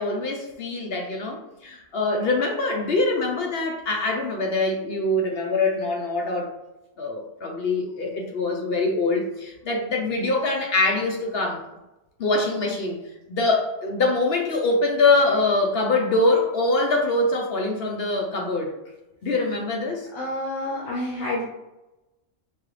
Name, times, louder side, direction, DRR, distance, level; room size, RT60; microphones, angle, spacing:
voice 1, 0.0-6.5 7.0-11.6 12.2-13.0 13.3-18.7 19.2-20.1, left 2 dB, 55° left, 1 dB, 0.8 m, -24 dB
voice 2, 20.1-21.4, left 1 dB, 85° left, -5 dB, 1.3 m, -28 dB
4.6 x 2.4 x 3.1 m, 0.98 s
omnidirectional pair, 1.4 m